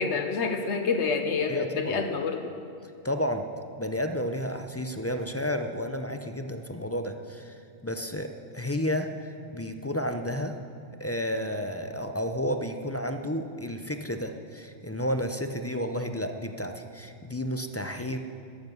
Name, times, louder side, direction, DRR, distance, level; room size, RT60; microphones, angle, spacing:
voice 1, 0.0-2.5, left 4 dB, 75° left, 6 dB, 1.2 m, -28 dB
voice 2, 1.5-2.0 3.0-3.4 3.8-8.3 8.5-10.5 11.0-18.2, equal, 20° left, 6 dB, 0.4 m, -31 dB
13.5 x 10.5 x 6.2 m, 2.5 s
omnidirectional pair, 1.2 m